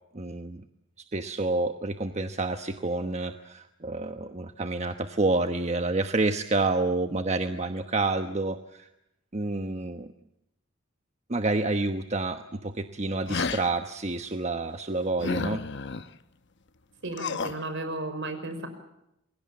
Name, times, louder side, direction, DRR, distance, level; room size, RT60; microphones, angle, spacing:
voice 1, 0.1-0.6 1.1-8.9 9.3-10.1 11.3-15.7, right 2 dB, 35° right, 7 dB, 1.1 m, -28 dB
sound 1, 13.3-13.7 15.2-16.0 17.1-17.6, left 4 dB, 60° left, 1.0 m, -31 dB
voice 2, 17.0-18.7, right 2 dB, 65° right, 9 dB, 5.8 m, -34 dB
28.5 x 22.5 x 7.4 m, 0.83 s
head